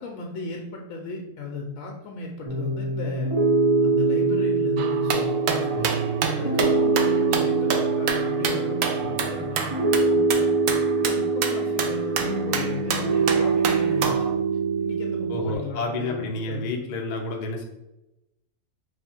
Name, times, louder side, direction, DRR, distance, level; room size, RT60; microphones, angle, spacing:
voice 1, 0.0-3.3 3.8-5.9 6.4-10.5 11.0-14.3 14.8-16.9, left 2 dB, 70° left, 0 dB, 0.9 m, -36 dB
Piano, 2.5-15.5, right 3 dB, 30° right, 0.6 m, -24 dB
sound 1, 4.8-14.3, right 5 dB, 70° right, 0.9 m, -29 dB
voice 2, 15.3-17.7, left 2 dB, 50° left, 1 dB, 0.5 m, -29 dB
3.2 x 2.7 x 4.2 m, 0.94 s
omnidirectional pair, 1.5 m